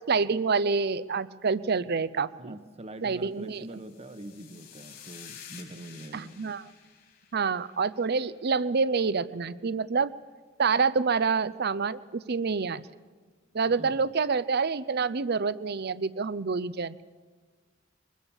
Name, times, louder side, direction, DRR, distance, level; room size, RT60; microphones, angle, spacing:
voice 1, 0.0-2.6 3.0-3.7 6.1-6.6 7.3-10.1 10.6-12.8 13.5-17.2, right 5 dB, 55° right, 17 dB, 0.7 m, -27 dB
voice 2, 2.4-6.4 13.7-13.9, right 1 dB, 35° right, 8 dB, 1.1 m, -44 dB
sound 1, 3.6-8.1, left 8 dB, 55° left, 3.8 m, -50 dB
23.0 x 21.0 x 7.3 m, 1.4 s
head